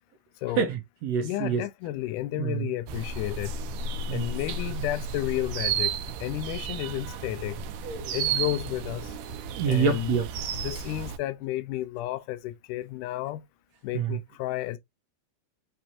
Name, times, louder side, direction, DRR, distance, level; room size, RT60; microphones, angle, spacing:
voice 1, 0.6-1.6 2.4-2.7 4.1-4.3 7.8-8.1 9.5-10.3 13.9-14.2, right 7 dB, 70° right, 1.9 m, -27 dB
voice 2, 1.2-3.5 4.1-5.9 6.2-7.6 8.1-9.1 9.7-10.2 10.6-13.4 13.8-14.8, left 14 dB, 90° left, 2.2 m, -32 dB
sound 1, 2.9-11.2, right 6 dB, 90° right, 2.2 m, -33 dB
5.9 x 3.1 x 2.7 m
omnidirectional pair, 3.5 m